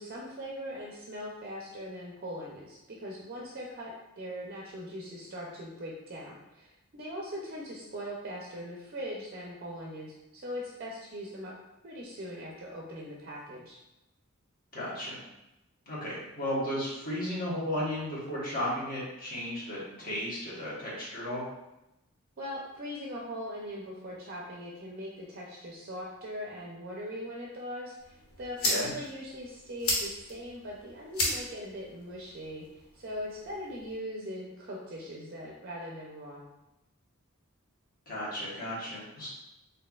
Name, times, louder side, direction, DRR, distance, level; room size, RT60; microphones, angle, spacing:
voice 1, 0.0-11.6 11.8-13.8 22.4-36.4, equal, 45° right, -3 dB, 0.5 m, -40 dB
voice 2, 14.7-15.2 15.9-21.4 28.6-28.9 38.1-39.3, left 1 dB, 40° left, -7 dB, 1.2 m, -34 dB
sound 1, 28.0-34.0, left 1 dB, 85° left, 0.8 m, -36 dB
4.2 x 2.7 x 2.3 m, 0.93 s
head